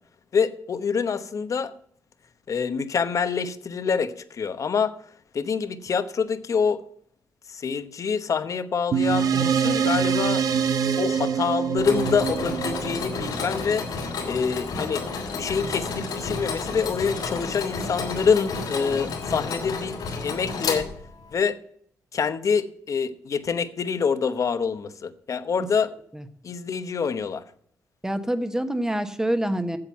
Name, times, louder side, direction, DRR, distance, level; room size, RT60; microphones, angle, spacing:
voice 1, 0.3-1.7 2.5-5.0 5.3-6.8 7.5-10.4 11.0-13.8 14.2-15.1 15.3-20.0 20.2-20.9 21.3-21.6 22.1-25.9 26.4-27.4, left 6 dB, 55° left, 12 dB, 0.9 m, -26 dB
sound 1, 8.9-13.7, right 7 dB, 65° right, 0.9 m, -24 dB
Mechanisms, 11.8-21.3, left 4 dB, 85° left, 3.2 m, -31 dB
voice 2, 28.0-29.8, right 1 dB, 10° right, 9 dB, 1.1 m, -26 dB
8.7 x 7.6 x 7.3 m, 0.64 s
cardioid pair, 90°, 7 cm